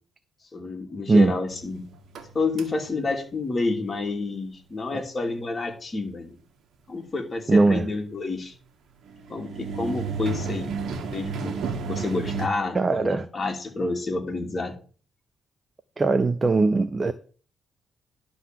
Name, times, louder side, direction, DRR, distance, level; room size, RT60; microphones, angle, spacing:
voice 1, 0.5-1.8 2.3-6.4 6.9-8.5 9.3-10.7 11.1-11.6 11.9-14.7, left 3 dB, 30° left, 2.8 m, -29 dB
sound 1, 1.5-3.0 9.0-12.5, right 4 dB, 65° right, 1.6 m, -32 dB
voice 2, 7.5-7.9 12.7-13.3 16.0-17.1, right 3 dB, 25° right, 0.7 m, -20 dB
11.5 x 3.9 x 7.7 m
cardioid pair, 90°, 0 cm